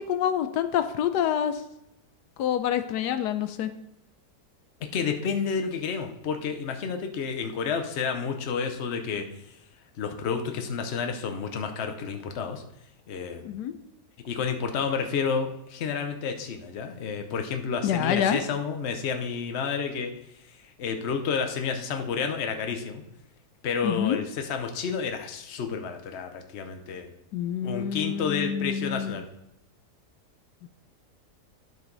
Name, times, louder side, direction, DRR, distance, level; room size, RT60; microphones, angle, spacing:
voice 1, 0.0-1.6 2.4-3.7 13.4-13.7 17.8-18.4 23.8-24.2 27.3-29.2 30.6-30.7, left 9 dB, 90° left, 10 dB, 1.2 m, -27 dB
voice 2, 4.9-9.2 10.0-12.6 13.1-13.6 14.2-20.1 20.4-23.0 23.6-27.1 27.6-29.3, left 6 dB, 50° left, 5 dB, 1.0 m, -30 dB
12.5 x 4.9 x 3.9 m, 0.81 s
omnidirectional pair, 1.7 m